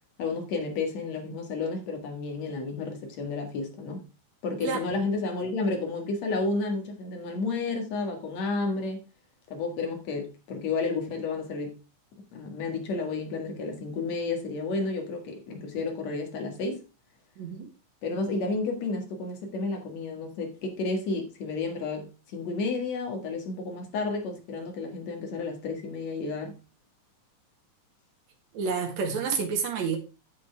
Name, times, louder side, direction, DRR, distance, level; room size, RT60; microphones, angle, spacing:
voice 1, 0.2-4.0 4.4-9.0 9.5-11.8 12.3-16.8 18.0-26.5, left 3 dB, 65° left, 2.9 m, -31 dB
voice 2, 17.4-17.7 28.5-30.0, right 5 dB, 70° right, 2.9 m, -29 dB
9.0 x 8.0 x 3.4 m
omnidirectional pair, 3.4 m